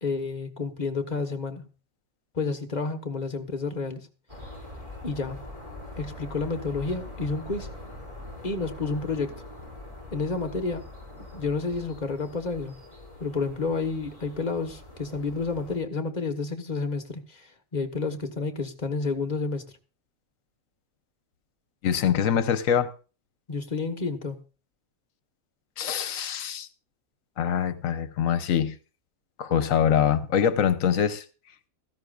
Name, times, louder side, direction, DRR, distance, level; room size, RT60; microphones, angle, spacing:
voice 1, 0.0-1.7 2.3-4.1 5.0-5.4 6.0-7.7 8.4-9.3 10.1-10.8 11.3-12.8 13.2-19.6 23.5-24.4, left 4 dB, 35° left, 1.3 m, -30 dB
sound 1, 4.3-15.8, left 2 dB, 25° right, 4.8 m, -43 dB
voice 2, 21.8-22.9 25.8-26.7 27.4-28.8 29.4-31.2, left 8 dB, 75° left, 1.2 m, -24 dB
16.5 x 14.0 x 2.5 m
omnidirectional pair, 1.4 m